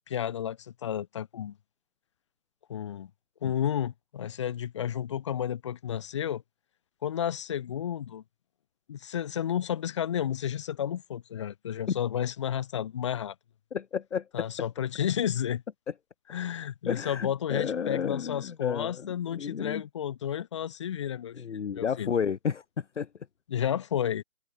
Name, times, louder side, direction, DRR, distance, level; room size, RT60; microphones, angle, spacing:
voice 1, 0.1-1.6 2.7-3.1 3.4-6.4 7.0-8.2 8.9-13.3 14.3-15.6 16.3-22.1 23.5-24.2, left 9 dB, 20° left, 2.6 m, -32 dB
voice 2, 13.7-14.5 16.9-19.8 21.4-23.1, left 7 dB, 55° left, 0.6 m, -32 dB
hypercardioid pair, 170°, 44 cm